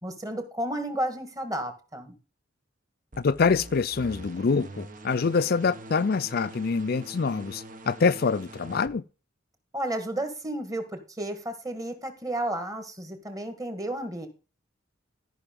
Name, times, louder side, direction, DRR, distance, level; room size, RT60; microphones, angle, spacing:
voice 1, 0.0-2.2 9.7-14.3, right 1 dB, 20° right, 1.8 m, -32 dB
sound 1, 3.1-8.9, right 1 dB, 45° right, 1.2 m, -44 dB
voice 2, 3.2-9.0, left 5 dB, 50° left, 0.4 m, -25 dB
13.5 x 5.8 x 5.3 m
head